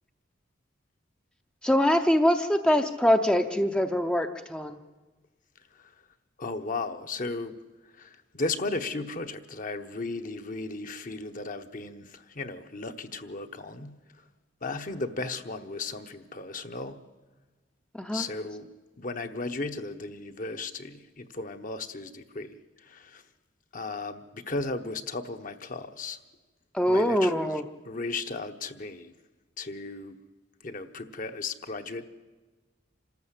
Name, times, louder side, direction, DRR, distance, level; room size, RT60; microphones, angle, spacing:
voice 1, 1.6-4.8 17.9-18.3 26.7-27.6, equal, 5° left, 0.6 m, -24 dB
voice 2, 6.4-7.6 7.8-14.2 14.6-17.0 18.1-18.7 19.0-23.2 23.7-26.2 26.9-29.1 29.6-30.2 30.6-32.0, left 3 dB, 45° left, 1.0 m, -35 dB
26.5 x 13.5 x 8.3 m
head